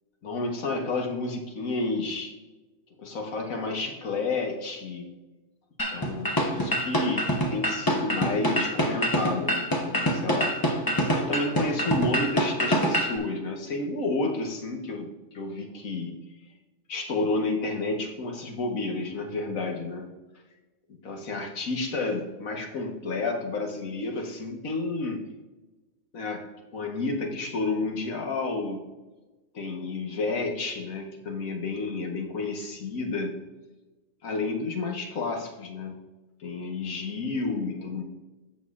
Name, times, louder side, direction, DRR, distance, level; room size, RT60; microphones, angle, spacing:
voice 1, 0.2-2.4 3.0-5.1 5.9-10.6 11.1-16.2 16.9-20.1 20.9-25.3 26.1-28.9 29.5-33.4 34.2-36.0 36.4-38.0, left 3 dB, 90° left, 3 dB, 1.7 m, -31 dB
sound 1, 5.8-13.2, equal, 20° left, 0.9 m, -26 dB
15.5 x 6.2 x 2.5 m, 1.2 s
omnidirectional pair, 1.4 m